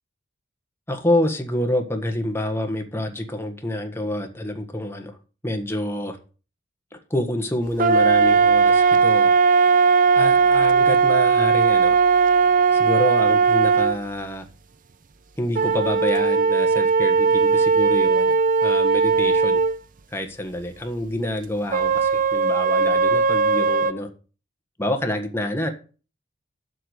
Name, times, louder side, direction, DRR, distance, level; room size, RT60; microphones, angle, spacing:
voice 1, 0.9-5.1 5.4-6.2 7.1-9.3 10.1-12.0 12.7-14.5 15.4-19.6 20.1-24.1 24.8-25.7, left 1 dB, 10° left, 1.5 m, -27 dB
sound 1, 7.8-14.0 15.6-19.8 21.7-23.9, right 5 dB, 40° right, 0.6 m, -18 dB
7.8 x 6.1 x 7.9 m
head